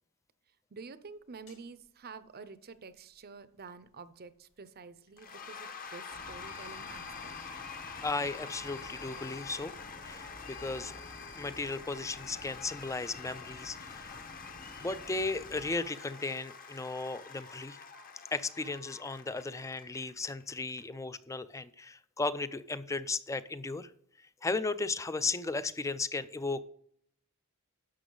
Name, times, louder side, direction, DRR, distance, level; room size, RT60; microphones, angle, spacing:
voice 1, 0.7-7.3, right 4 dB, 45° right, 14 dB, 0.6 m, -49 dB
sound 1, 1.5-1.6 6.5-7.6 8.5-9.6 10.5-11.6, left 6 dB, 65° left, 3.9 m, -54 dB
Cheering / Applause / Crowd, 5.2-20.8, left 5 dB, 40° left, 1.1 m, -46 dB
sound 2, 6.1-15.7, left 1 dB, 85° left, 2.9 m, -53 dB
voice 2, 8.0-9.7 10.0-10.9 11.4-14.1 14.8-17.8 18.3-23.9 24.4-26.6, left 3 dB, 15° left, 15 dB, 0.4 m, -35 dB
11.0 x 7.0 x 3.8 m, 0.67 s
head